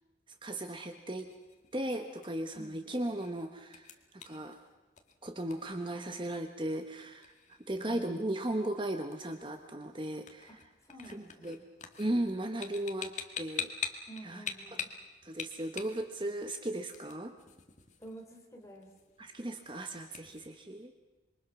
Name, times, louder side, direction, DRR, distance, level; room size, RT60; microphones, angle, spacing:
voice 1, 0.4-1.3 1.7-4.6 5.2-10.7 11.1-11.6 12.0-14.4 15.2-17.3 19.2-20.9, right 1 dB, 25° right, 6 dB, 1.1 m, -37 dB
sound 1, 1.0-20.5, left 7 dB, 40° left, 1.9 m, -46 dB
voice 2, 7.8-8.1 10.5-10.6 10.8-11.6 14.1-14.9 18.0-18.9, right 1 dB, 15° left, 0 dB, 3.7 m, -49 dB
27.0 x 23.5 x 6.1 m, 1.2 s
head